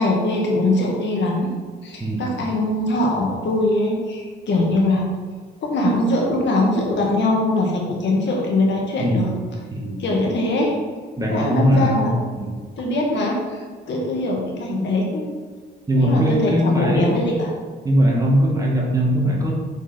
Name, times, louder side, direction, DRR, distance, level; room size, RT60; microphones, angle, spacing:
voice 1, 0.0-1.5 1.8-5.1 5.6-9.3 10.0-10.8 11.3-12.1 12.8-15.3 15.9-17.5, left 2 dB, 65° left, -1 dB, 1.8 m, -22 dB
voice 2, 2.0-2.3 9.0-9.3 9.7-10.1 11.2-12.6 15.9-17.2 17.8-19.5, equal, 15° right, -1 dB, 1.7 m, -20 dB
6.5 x 5.7 x 4.3 m, 1.5 s
cardioid pair, 90°, 20 cm